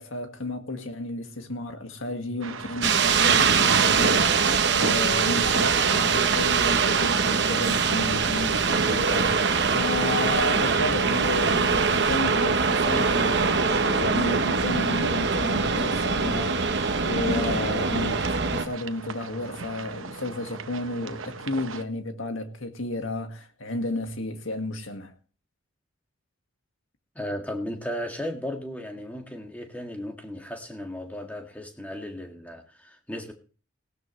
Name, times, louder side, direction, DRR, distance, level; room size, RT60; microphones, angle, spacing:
voice 1, 0.0-25.1, left 2 dB, 85° left, 1.9 m, -32 dB
sound 1, 2.4-21.8, right 4 dB, 80° right, 0.9 m, -36 dB
sound 2, 2.8-18.7, right 5 dB, 55° right, 1.0 m, -23 dB
voice 2, 27.2-33.3, equal, 10° left, 1.9 m, -35 dB
17.5 x 12.5 x 3.2 m
head